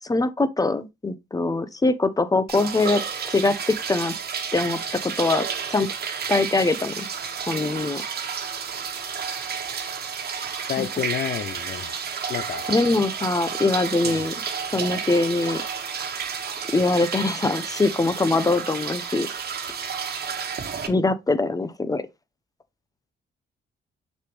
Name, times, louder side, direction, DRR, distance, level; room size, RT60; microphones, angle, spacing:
voice 1, 0.0-4.1 4.5-5.9 6.3-7.1 7.5-8.0 10.8-10.9 12.7-14.4 14.7-15.6 16.7-19.3 20.9-22.1, left 3 dB, 20° left, 0.9 m, -23 dB
sound 1, 2.5-20.9, right 6 dB, 55° right, 1.4 m, -31 dB
voice 2, 10.7-12.0 12.3-12.6 14.0-14.1, left 10 dB, 55° left, 0.5 m, -30 dB
6.4 x 5.3 x 3.1 m
cardioid pair, 90°, 20 cm